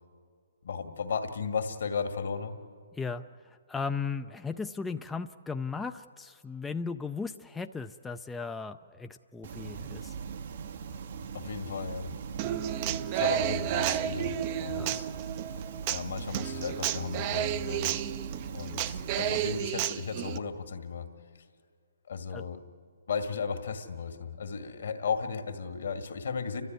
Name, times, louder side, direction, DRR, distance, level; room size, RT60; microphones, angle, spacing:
voice 1, 0.6-2.5 11.3-12.1 13.1-15.1 15.9-18.1 18.5-21.1 22.1-22.6 23.1-26.6, left 5 dB, 65° left, 6 dB, 2.0 m, -35 dB
voice 2, 2.9-10.2 12.4-12.6 14.7-15.0 22.3-22.5, left 5 dB, 10° left, 7 dB, 0.5 m, -37 dB
sound 1, 9.4-19.6, right 6 dB, 55° right, 0.9 m, -40 dB
Human voice / Acoustic guitar, 12.4-20.4, right 12 dB, 35° right, 0.6 m, -32 dB
30.0 x 12.5 x 9.4 m, 2.2 s
hypercardioid pair, 140°, 0 cm